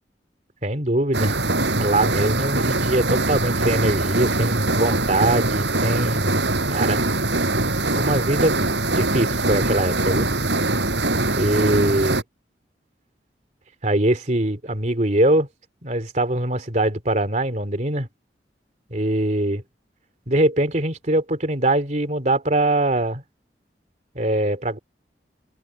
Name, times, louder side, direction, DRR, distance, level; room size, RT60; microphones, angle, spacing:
voice 1, 0.6-1.4 1.8-6.4 6.7-7.0 7.9-8.5 8.9-10.3 11.3-12.2 13.8-15.5 15.8-18.1 18.9-19.6 20.3-23.2 24.1-24.8, right 1 dB, 45° right, 3.2 m, -22 dB
sound 1, 1.1-12.2, right 2 dB, 85° right, 6.1 m, -22 dB
head